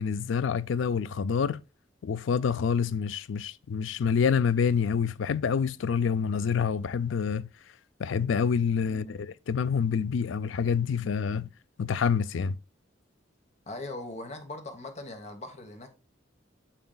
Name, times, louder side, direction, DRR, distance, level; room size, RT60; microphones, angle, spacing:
voice 1, 0.0-1.6 2.0-7.5 8.0-11.5 11.8-12.6, left 6 dB, 80° left, 0.4 m, -27 dB
voice 2, 13.7-15.9, left 2 dB, 35° left, 1.2 m, -40 dB
9.0 x 6.8 x 2.3 m
head